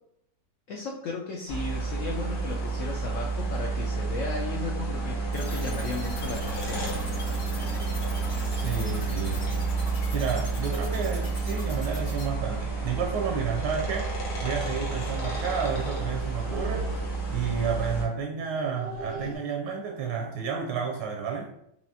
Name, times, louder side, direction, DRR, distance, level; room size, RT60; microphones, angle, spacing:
voice 1, 0.7-6.9, left 3 dB, 80° left, 0 dB, 0.7 m, -35 dB
sound 1, 1.5-18.0, right 3 dB, 60° left, 1.4 m, -30 dB
sound 2, 5.3-12.2, left 2 dB, 40° left, 0.5 m, -43 dB
voice 2, 8.5-21.5, right 6 dB, 80° right, 2 dB, 1.2 m, -31 dB
sound 3, 12.7-12.8 13.2-13.3 13.7-13.8 16.2-17.5 18.4-19.3, right 2 dB, 55° right, 0.8 m, -39 dB
4.7 x 2.8 x 2.7 m, 0.77 s
omnidirectional pair, 1.9 m